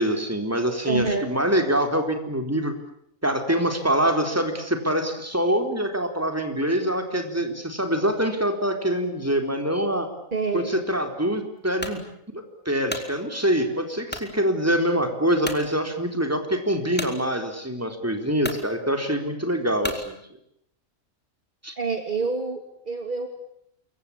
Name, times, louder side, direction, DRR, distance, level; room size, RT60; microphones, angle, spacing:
voice 1, 0.0-2.7 3.2-10.1 10.5-12.0 12.3-20.2 21.6-21.7, equal, 10° right, 5 dB, 4.1 m, -25 dB
voice 2, 0.8-1.3 10.3-10.7 21.8-23.3, right 4 dB, 35° right, 5 dB, 2.7 m, -27 dB
sound 1, 11.8-12.0 12.6-13.1 14.1-14.3 14.9-15.0 15.4-15.6 17.0-17.2 17.9-18.0 18.4-18.6 19.8-20.1, equal, 5° left, 3.8 m, -32 dB
28.0 x 23.5 x 8.7 m, 0.73 s
omnidirectional pair, 1.4 m